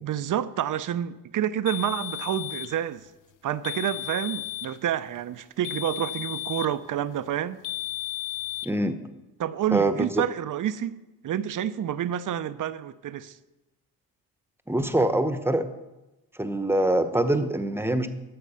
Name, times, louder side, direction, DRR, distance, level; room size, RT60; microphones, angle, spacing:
voice 1, 0.0-3.1 3.4-7.6 9.4-11.0 11.2-13.4, right 10 dB, 55° right, 0.6 m, -28 dB
sound 1, 1.7-2.8 3.6-4.8 5.6-6.8 7.6-8.7, left 17 dB, 55° left, 0.6 m, -34 dB
voice 2, 8.6-9.0 9.7-10.2 14.7-15.7 16.4-18.1, right 1 dB, 5° right, 0.9 m, -24 dB
12.0 x 6.6 x 5.5 m
cardioid pair, 80°, 37 cm